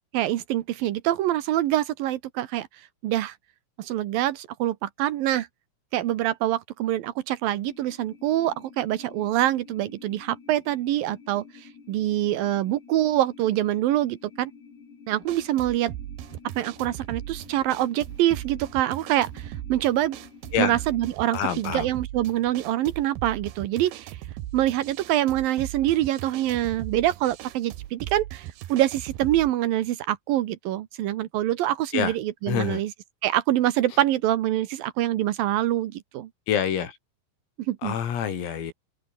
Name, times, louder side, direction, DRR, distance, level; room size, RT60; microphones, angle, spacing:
voice 1, 0.1-2.7 3.0-3.3 3.8-5.5 5.9-14.5 15.1-15.9 16.6-20.2 20.6-24.2 24.5-32.9 33.2-36.3 37.7-37.9, right 13 dB, 85° right, 2.0 m, -25 dB
sound 1, 7.6-21.2, left 6 dB, 50° left, 7.0 m, -50 dB
sound 2, 15.2-29.5, right 14 dB, 70° right, 2.6 m, -38 dB
voice 2, 21.3-21.9 31.9-32.2 32.5-32.8 36.5-37.0 37.8-38.7, left 8 dB, 80° left, 6.5 m, -26 dB
open air
omnidirectional pair, 6.0 m